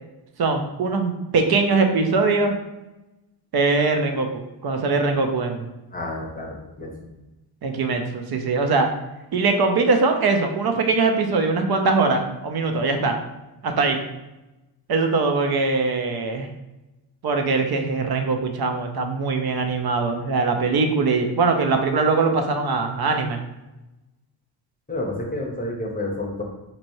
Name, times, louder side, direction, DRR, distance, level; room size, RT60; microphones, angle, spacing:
voice 1, 0.4-2.6 3.5-4.3 4.6-5.7 7.6-8.9 9.3-13.2 13.6-14.0 14.9-16.5 17.2-23.4, right 3 dB, 55° right, 5 dB, 0.6 m, -21 dB
voice 2, 5.9-6.9 24.9-26.4, left 2 dB, 20° left, -1 dB, 0.7 m, -29 dB
4.1 x 3.0 x 2.6 m, 1.0 s
cardioid pair, 115°, 46 cm